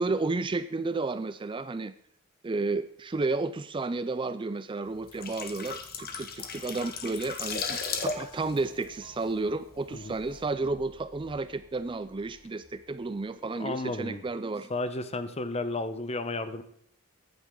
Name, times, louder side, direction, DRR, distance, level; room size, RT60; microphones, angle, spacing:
voice 1, 0.0-1.9 2.4-14.7, right 3 dB, 25° right, 14 dB, 0.4 m, -32 dB
sound 1, 4.9-9.8 10.1-10.3, left 5 dB, 45° left, 1.6 m, -36 dB
sound 2, 8.1-13.5, left 1 dB, 85° left, 2.5 m, -55 dB
voice 2, 13.5-14.2 14.7-16.6, left 2 dB, 30° left, 11 dB, 0.9 m, -33 dB
15.0 x 11.0 x 3.8 m, 0.69 s
head